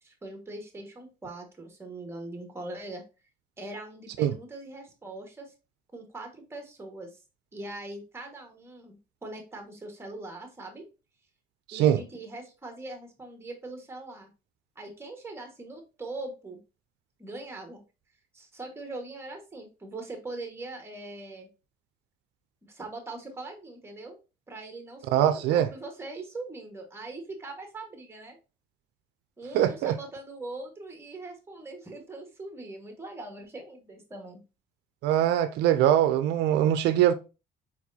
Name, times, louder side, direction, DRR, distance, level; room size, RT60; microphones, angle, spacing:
voice 1, 0.0-3.0 3.6-5.5 5.9-7.2 7.5-10.8 11.7-14.3 14.7-16.6 17.2-17.8 18.3-21.5 22.7-24.2 24.5-28.4 29.4-34.4, right 2 dB, 15° right, 1.5 m, -41 dB
voice 2, 25.1-25.6 29.5-30.0 35.0-37.1, right 11 dB, 85° right, 0.4 m, -22 dB
4.6 x 4.2 x 2.7 m
cardioid pair, 110°, 17 cm